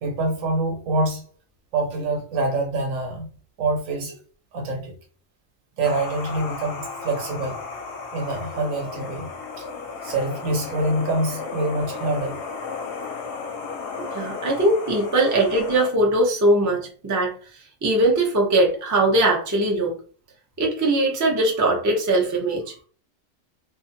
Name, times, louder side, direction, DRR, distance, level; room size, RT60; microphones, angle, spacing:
voice 1, 0.0-1.3 1.7-3.3 3.6-4.2 4.5-4.9 5.7-7.6 8.1-9.3 9.6-9.7 10.0-12.4, right 2 dB, 80° right, 1.2 m, -25 dB
sound 1, 5.8-15.9, left 4 dB, 65° left, 0.8 m, -34 dB
voice 2, 14.1-19.9 20.6-22.7, right 2 dB, 25° right, 0.4 m, -21 dB
2.5 x 2.5 x 2.5 m
omnidirectional pair, 1.3 m